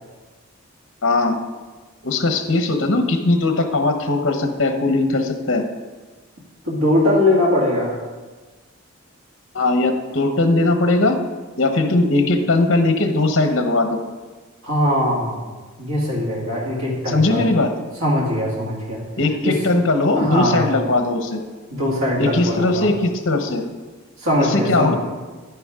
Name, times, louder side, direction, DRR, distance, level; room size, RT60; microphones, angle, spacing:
voice 1, 1.0-1.4 2.0-5.6 9.5-11.2 11.6-14.0 17.1-17.7 19.2-21.4 22.2-23.6 24.4-25.0, left 2 dB, 60° left, 6 dB, 1.0 m, -19 dB
voice 2, 6.6-7.9 14.6-15.5 15.8-17.4 18.0-19.0 19.4-19.6 20.2-20.7 21.7-22.9 24.2-25.0, left 1 dB, 80° right, -4 dB, 2.1 m, -20 dB
10.5 x 9.4 x 3.7 m, 1.3 s
head